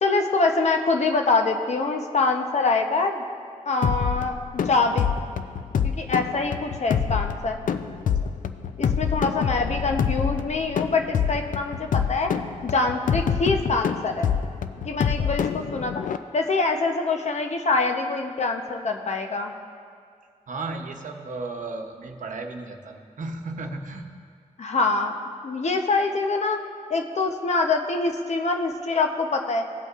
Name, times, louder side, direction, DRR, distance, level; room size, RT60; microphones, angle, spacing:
voice 1, 0.0-3.2 3.7-5.1 5.8-7.6 8.8-12.3 12.6-14.3 14.8-16.0 16.3-19.5 24.6-25.2 25.4-26.6 26.9-29.6, left 3 dB, 55° left, 4 dB, 0.8 m, -24 dB
sound 1, 3.8-16.2, left 7 dB, 80° left, 0.4 m, -26 dB
voice 2, 14.9-15.3 20.5-24.1, right 3 dB, 75° right, 3 dB, 0.8 m, -35 dB
17.0 x 8.1 x 2.5 m, 2.2 s
wide cardioid pair, 135°, 13 cm